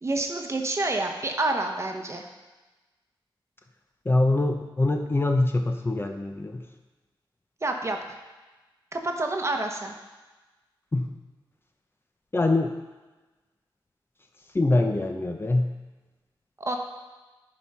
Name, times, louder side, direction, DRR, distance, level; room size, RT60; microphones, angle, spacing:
voice 1, 0.0-2.2 7.6-8.0 8.9-9.9 16.6-16.8, right 2 dB, 35° right, 3 dB, 1.0 m, -28 dB
voice 2, 4.1-6.6 10.9-11.1 12.3-12.7 14.5-15.7, left 2 dB, 25° left, 4 dB, 0.7 m, -24 dB
10.5 x 4.6 x 5.5 m, 1.2 s
wide cardioid pair, 100°, 9 cm